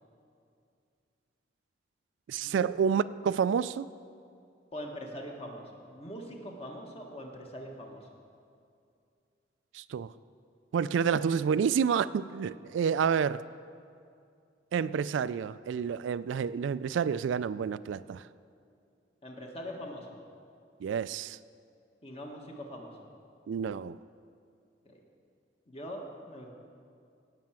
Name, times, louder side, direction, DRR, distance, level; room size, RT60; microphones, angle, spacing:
voice 1, 2.3-3.9 9.7-10.1 10.7-13.4 14.7-18.2 20.8-21.4 23.5-24.0, right 7 dB, 75° right, 16 dB, 0.3 m, -29 dB
voice 2, 4.7-8.1 19.2-20.2 22.0-23.1 24.8-25.0 25.7-26.5, equal, 30° left, 1 dB, 1.6 m, -42 dB
16.5 x 5.8 x 7.5 m, 2.4 s
head